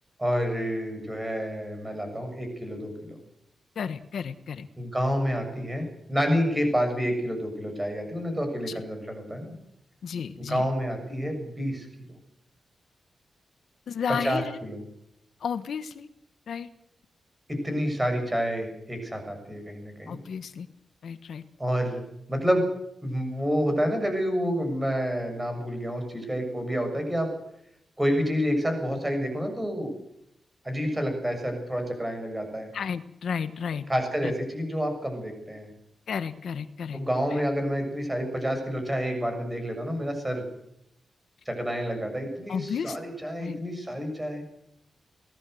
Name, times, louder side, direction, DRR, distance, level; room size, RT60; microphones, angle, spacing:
voice 1, 0.2-3.2 4.8-9.5 10.4-11.9 14.1-14.8 17.5-20.2 21.6-22.0 22.3-22.6 23.0-27.3 28.0-29.9 30.6-32.7 33.9-35.7 36.9-40.4 41.4-44.4, equal, 10° right, 5 dB, 6.7 m, -29 dB
voice 2, 3.8-4.7 10.0-10.6 13.9-14.6 15.4-16.1 16.5-16.7 20.1-20.7 21.0-21.4 32.7-33.8 34.2-34.3 36.1-37.0 42.5-43.0 43.4-43.6, left 7 dB, 70° left, 11 dB, 1.3 m, -32 dB
24.0 x 18.5 x 7.9 m, 0.75 s
wide cardioid pair, 175°, 0 cm